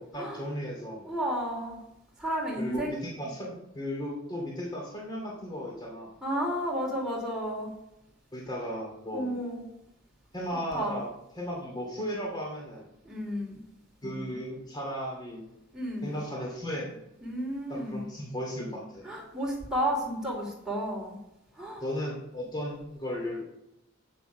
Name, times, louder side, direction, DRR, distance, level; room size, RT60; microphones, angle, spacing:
voice 1, 0.0-1.1 2.6-6.1 8.3-9.3 10.3-12.9 14.0-15.5 16.0-17.0 17.7-19.1 21.8-23.4, equal, 20° left, -2 dB, 2.4 m, -35 dB
voice 2, 1.0-1.8 2.2-3.0 6.2-7.7 9.1-9.6 10.7-11.0 13.0-13.6 15.7-16.2 17.2-18.0 19.0-21.2 21.5-21.8, equal, 5° right, -3 dB, 2.9 m, -32 dB
8.7 x 6.8 x 6.0 m, 0.86 s
head